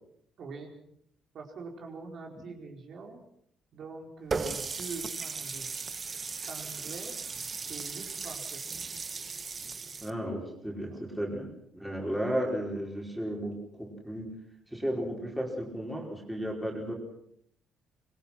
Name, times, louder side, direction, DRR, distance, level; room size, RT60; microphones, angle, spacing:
voice 1, 0.4-0.7 1.3-3.2 3.7-5.7 6.5-7.1 7.7-8.6 9.8-10.0 10.9-11.0, right 4 dB, 50° right, 1 dB, 4.9 m, -44 dB
Water tap faucet, 4.3-10.1, right 4 dB, 25° right, 1.2 m, -37 dB
voice 2, 10.0-14.4 14.7-16.9, equal, 5° right, -1 dB, 4.9 m, -34 dB
25.0 x 22.0 x 5.9 m, 0.69 s
cardioid pair, 160°, 0 cm